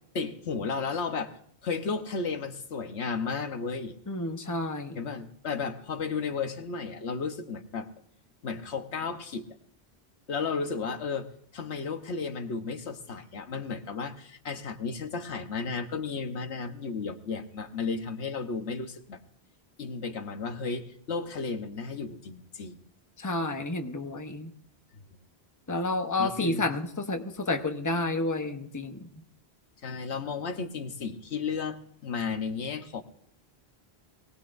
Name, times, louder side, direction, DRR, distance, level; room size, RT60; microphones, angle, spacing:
voice 1, 0.1-1.4 1.6-3.9 4.9-7.9 8.4-9.5 10.3-11.3 11.5-19.2 19.8-22.8 26.2-26.6 29.8-31.8 32.0-33.0, left 5 dB, 85° left, 7 dB, 1.4 m, -33 dB
voice 2, 4.1-5.0 23.2-24.5 25.7-29.1, left 2 dB, 20° left, 5 dB, 0.9 m, -30 dB
22.0 x 18.5 x 2.6 m, 0.67 s
omnidirectional pair, 1.1 m